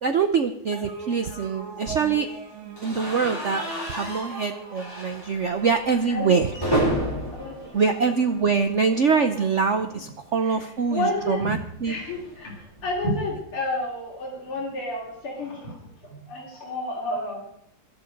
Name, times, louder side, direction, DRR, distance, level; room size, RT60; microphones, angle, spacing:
voice 1, 0.0-2.3 2.8-6.5 7.7-12.0, right 5 dB, 90° right, 8 dB, 0.6 m, -24 dB
sound 1, 0.7-10.5, right 5 dB, 35° right, 1.9 m, -43 dB
sound 2, 2.8-8.8 9.1-9.3 9.5-9.6 10.9-13.2, right 1 dB, 10° left, 7.1 m, -32 dB
voice 2, 6.1-6.8 7.3-8.1 10.0-10.1 10.4-10.6 10.9-11.6 11.8-17.4, left 1 dB, 80° left, -2 dB, 3.8 m, -31 dB
18.0 x 11.5 x 5.2 m, 0.75 s
omnidirectional pair, 2.4 m